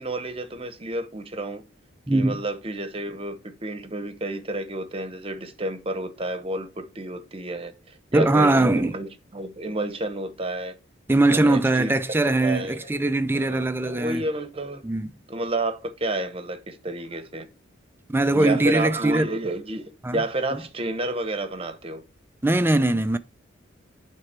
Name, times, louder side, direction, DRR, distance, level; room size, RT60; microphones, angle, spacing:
voice 1, 0.0-1.6 2.1-10.7 11.3-12.9 13.3-14.8 15.3-17.5 18.3-22.0, right 1 dB, 30° right, 0.9 m, -30 dB
voice 2, 2.1-2.4 8.1-8.9 11.1-14.2 14.8-15.1 18.1-19.3 20.0-20.2 22.4-23.2, right 2 dB, 10° right, 0.4 m, -21 dB
10.0 x 3.4 x 4.4 m
head